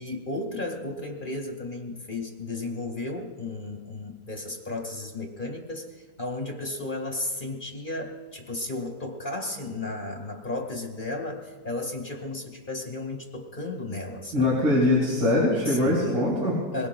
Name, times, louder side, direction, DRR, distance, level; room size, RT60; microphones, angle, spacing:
voice 1, 0.0-14.5 15.6-16.3 16.7-16.9, left 2 dB, 30° left, 3 dB, 1.5 m, -34 dB
voice 2, 14.3-16.5, left 1 dB, 65° right, -6 dB, 4.2 m, -22 dB
24.5 x 22.0 x 2.2 m, 1.4 s
omnidirectional pair, 2.1 m